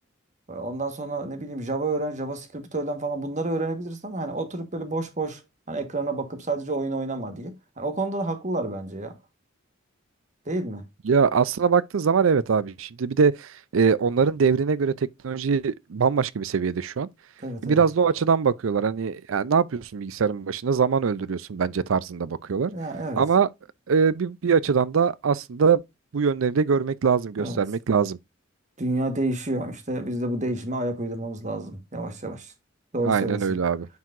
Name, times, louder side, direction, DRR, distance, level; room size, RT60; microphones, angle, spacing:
voice 1, 0.5-5.4 5.7-9.1 10.4-10.8 17.4-17.8 22.7-23.2 27.4-27.6 28.8-32.5 32.9-33.6, right 2 dB, 40° right, 1.4 m, -29 dB
voice 2, 11.1-17.1 17.6-22.7 23.2-23.5 23.9-25.8 26.1-28.2 33.0-33.9, right 6 dB, 90° right, 0.5 m, -22 dB
9.4 x 4.7 x 2.5 m
head